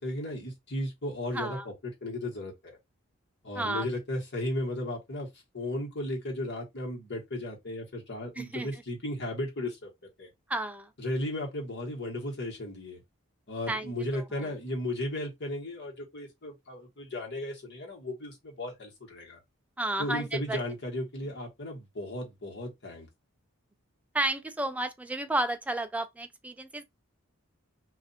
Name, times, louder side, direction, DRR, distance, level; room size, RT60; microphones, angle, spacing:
voice 1, 0.0-2.8 3.4-5.3 5.5-9.9 10.2-10.3 11.0-13.0 13.5-19.4 20.0-23.1, left 1 dB, 55° left, 1.4 m, -35 dB
voice 2, 1.3-1.7 3.6-3.9 8.4-8.7 10.5-10.9 13.7-14.5 19.8-20.6 24.1-26.8, right 1 dB, 5° right, 0.4 m, -32 dB
2.6 x 2.4 x 4.1 m
head